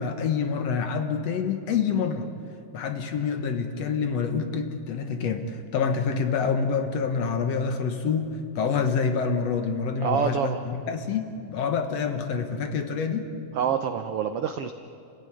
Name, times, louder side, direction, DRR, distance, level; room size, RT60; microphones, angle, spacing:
voice 1, 0.0-2.3 2.7-13.3, left 5 dB, 60° left, 7 dB, 2.1 m, -27 dB
voice 2, 10.0-10.6 13.5-14.7, right 7 dB, 75° right, 8 dB, 1.3 m, -26 dB
29.5 x 15.5 x 9.9 m, 2.5 s
omnidirectional pair, 3.7 m